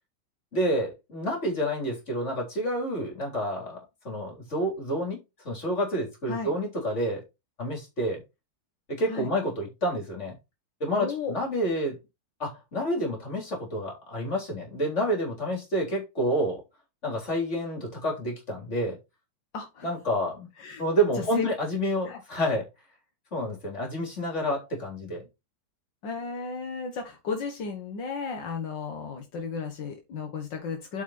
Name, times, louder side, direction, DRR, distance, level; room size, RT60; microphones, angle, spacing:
voice 1, 0.5-3.8 4.0-5.2 5.4-7.2 7.6-8.2 8.9-10.3 10.8-12.0 12.4-16.6 17.0-19.0 19.8-20.5 20.8-22.6 23.3-25.2, equal, 40° left, 4.0 m, -29 dB
voice 2, 11.0-11.4 19.5-19.9 20.6-20.8 21.2-21.5 22.1-22.2 26.0-31.0, left 5 dB, 80° left, 2.1 m, -34 dB
7.9 x 5.9 x 4.3 m
omnidirectional pair, 1.9 m